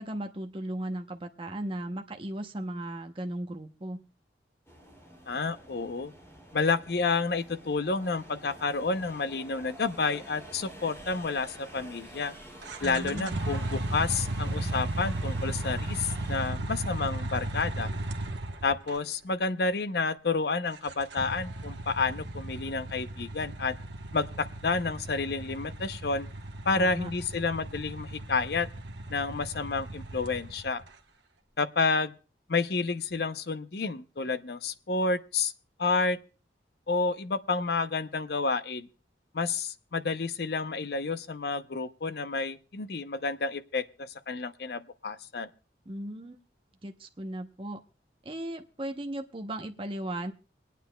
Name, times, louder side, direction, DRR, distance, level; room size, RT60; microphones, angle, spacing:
voice 1, 0.0-4.0 12.8-13.4 26.7-27.1 45.9-46.4 46.8-47.8 48.2-50.3, right 1 dB, 30° right, 4 dB, 0.7 m, -36 dB
sound 1, 4.7-16.5, right 1 dB, 15° left, 2.6 m, -49 dB
voice 2, 5.3-6.1 6.5-12.3 12.8-17.9 18.6-23.7 24.1-26.3 26.7-28.7 29.1-30.8 31.6-32.1 32.5-35.5 35.8-36.2 36.9-38.9 39.3-45.5, left 4 dB, 60° left, 12 dB, 0.6 m, -30 dB
sound 2, 12.6-19.0 20.8-30.8, right 1 dB, 80° right, 1.1 m, -35 dB
27.5 x 9.2 x 2.2 m, 0.34 s
head